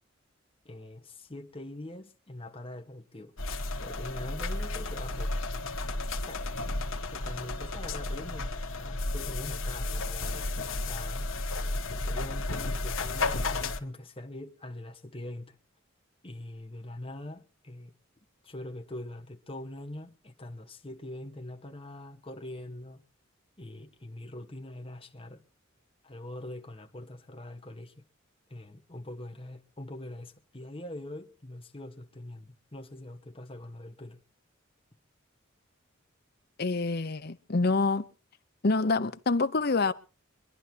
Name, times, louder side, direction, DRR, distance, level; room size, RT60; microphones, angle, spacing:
voice 1, 0.6-3.3 3.8-5.3 6.3-6.5 7.1-15.6 16.2-17.9 18.4-23.0 23.6-25.4 26.0-28.1 28.5-34.2, left 1 dB, 25° left, 1.3 m, -43 dB
sound 1, 3.4-13.8, left 2 dB, 85° left, 1.4 m, -33 dB
voice 2, 36.6-38.1 38.6-39.9, left 3 dB, 50° left, 0.8 m, -26 dB
25.0 x 11.0 x 2.9 m
head